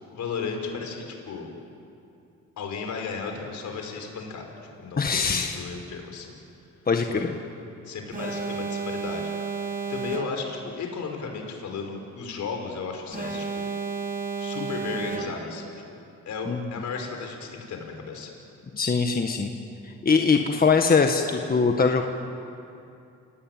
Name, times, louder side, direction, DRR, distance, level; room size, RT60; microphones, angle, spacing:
voice 1, 0.1-1.5 2.6-4.5 4.8-6.4 7.1-7.3 7.9-9.3 9.9-13.6 14.4-16.0 16.3-18.3, left 5 dB, 70° left, 3 dB, 5.3 m, -34 dB
voice 2, 5.0-5.6 6.9-7.3 16.5-16.6 18.7-19.5 20.0-22.0, left 5 dB, 30° left, 4 dB, 1.7 m, -22 dB
Alarm, 8.1-10.7 13.1-15.7, right 5 dB, 30° right, 2.5 m, -32 dB
29.0 x 18.0 x 9.2 m, 2.6 s
cardioid pair, 90°, 30 cm